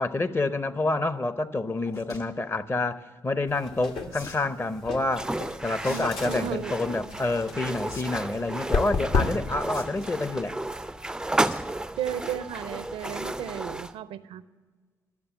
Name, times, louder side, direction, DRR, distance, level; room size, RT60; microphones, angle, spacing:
voice 1, 0.0-5.3 5.6-10.6, left 2 dB, 25° left, 0.7 m, -28 dB
sound 1, 1.9-2.3 4.1-4.5 5.8-6.0 6.4-6.7 7.9-8.0 8.3-8.4 9.7-10.2 11.4-11.7 12.1-12.3 12.7-12.8 13.0-13.1, left 3 dB, 40° left, 1.6 m, -44 dB
sound 2, 3.5-9.6, left 4 dB, 65° left, 1.3 m, -32 dB
sound 3, 5.1-13.9, right 1 dB, 5° right, 0.4 m, -33 dB
voice 2, 5.8-6.7 12.0-14.4, right 9 dB, 70° right, 0.5 m, -34 dB
12.0 x 6.7 x 8.9 m
hypercardioid pair, 45°, 10 cm